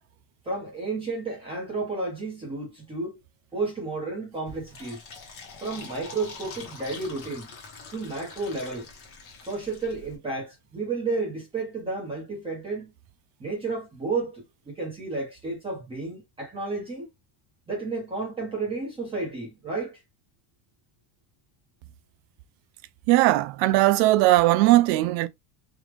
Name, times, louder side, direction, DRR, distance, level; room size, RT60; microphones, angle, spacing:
voice 1, 0.4-3.2 3.5-5.0 5.6-7.5 7.9-8.9 9.5-12.9 13.4-14.4 14.7-17.1 17.7-20.0, right 3 dB, 10° right, 1.0 m, -32 dB
Fill (with liquid), 4.5-10.2, left 4 dB, 30° left, 1.0 m, -44 dB
voice 2, 23.1-25.3, right 17 dB, 55° right, 0.5 m, -19 dB
3.5 x 2.4 x 3.1 m
cardioid pair, 170°, 45 cm